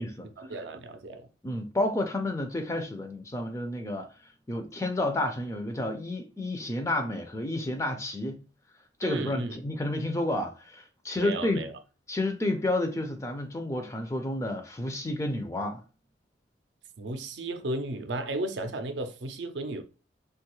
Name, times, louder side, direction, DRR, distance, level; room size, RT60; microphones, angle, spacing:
voice 1, 0.4-1.3 9.0-9.6 11.2-11.7 17.0-19.8, right 2 dB, 70° right, 0.5 m, -34 dB
voice 2, 1.4-4.1 4.5-8.4 9.0-11.7 12.1-15.8, left 1 dB, 15° left, 0.3 m, -30 dB
3.0 x 2.3 x 3.0 m
head